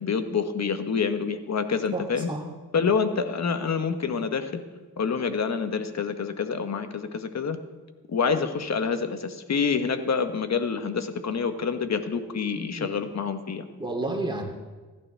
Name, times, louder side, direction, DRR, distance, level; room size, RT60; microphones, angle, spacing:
voice 1, 0.0-2.3 2.7-4.6 5.0-7.6 8.1-13.7, left 5 dB, 45° left, 8 dB, 1.2 m, -27 dB
voice 2, 1.9-2.4 12.8-12.9 13.8-14.4, right 2 dB, 10° right, -1 dB, 2.8 m, -31 dB
15.5 x 11.5 x 3.4 m, 1.3 s
cardioid pair, 75°, 37 cm